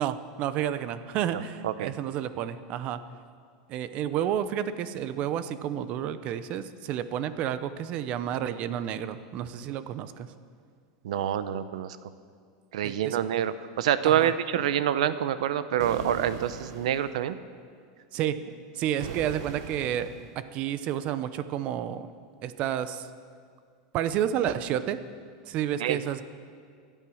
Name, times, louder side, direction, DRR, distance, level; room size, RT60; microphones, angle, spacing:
voice 1, 0.0-3.0 3.7-10.3 12.8-13.2 14.0-14.3 18.1-18.4 18.7-20.1 20.5-22.1 22.4-23.1 23.9-25.0 25.5-26.2, right 10 dB, 40° right, 13 dB, 0.7 m, -30 dB
voice 2, 11.0-12.0 12.7-17.4 25.8-26.0, right 10 dB, 90° right, 13 dB, 0.8 m, -26 dB
sound 1, 15.8-17.2 19.0-20.4, right 7 dB, 60° right, 1.1 m, -40 dB
24.0 x 9.1 x 6.3 m, 2.1 s
supercardioid pair, 160°, 3 cm